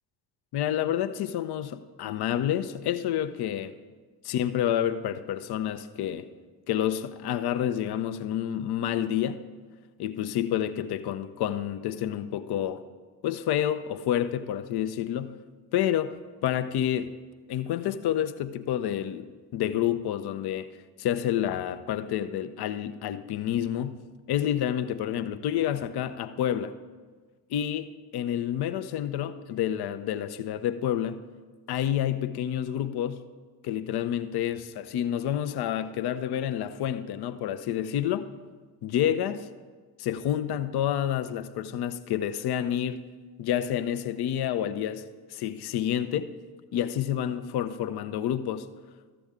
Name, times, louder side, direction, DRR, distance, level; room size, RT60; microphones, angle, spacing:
voice 1, 0.5-3.7 4.2-6.2 6.7-9.4 10.0-12.8 13.2-15.4 15.7-16.2 16.4-17.1 17.5-19.3 19.5-20.7 21.0-24.0 24.3-26.7 27.5-31.2 31.7-33.2 33.6-38.3 38.8-39.5 40.0-43.0 43.4-45.0 45.3-46.3 46.7-48.7, left 10 dB, 50° left, 0.7 m, -29 dB
13.5 x 7.0 x 3.6 m
hypercardioid pair, 45°, 50 cm